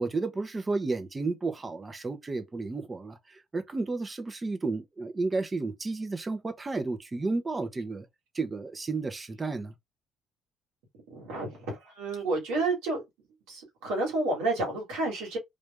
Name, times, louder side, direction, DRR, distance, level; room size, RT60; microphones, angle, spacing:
voice 1, 0.0-8.0 8.3-9.7, right 3 dB, 30° right, 0.9 m, -32 dB
voice 2, 11.1-13.0 13.5-15.4, right 2 dB, 80° right, 2.2 m, -30 dB
3.4 x 2.5 x 3.5 m
supercardioid pair, 65°, 0 cm